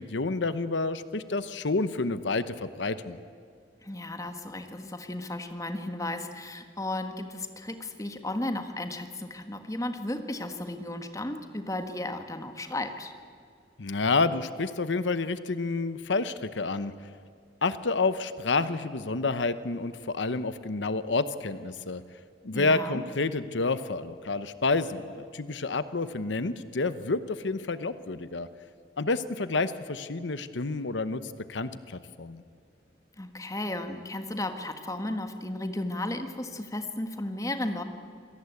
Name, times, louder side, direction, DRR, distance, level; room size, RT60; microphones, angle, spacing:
voice 1, 0.0-3.2 13.8-16.9 17.6-22.0 22.4-28.5 29.0-32.4, left 3 dB, 85° left, 13 dB, 0.9 m, -29 dB
voice 2, 3.8-13.1 22.5-23.0 33.2-37.8, left 1 dB, 20° left, 7 dB, 1.6 m, -34 dB
26.5 x 18.0 x 8.4 m, 2.3 s
head